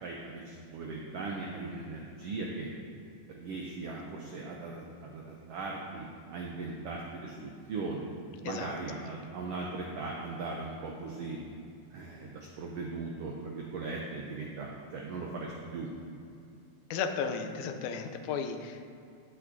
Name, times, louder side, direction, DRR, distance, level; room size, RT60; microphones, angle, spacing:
voice 1, 0.0-2.7 3.3-6.0 6.3-8.0 8.4-11.4 11.9-15.9, right 3 dB, 80° right, -1 dB, 1.4 m, -39 dB
voice 2, 16.9-18.9, left 6 dB, 80° left, 7 dB, 2.0 m, -34 dB
15.5 x 5.8 x 2.7 m, 2.6 s
omnidirectional pair, 3.5 m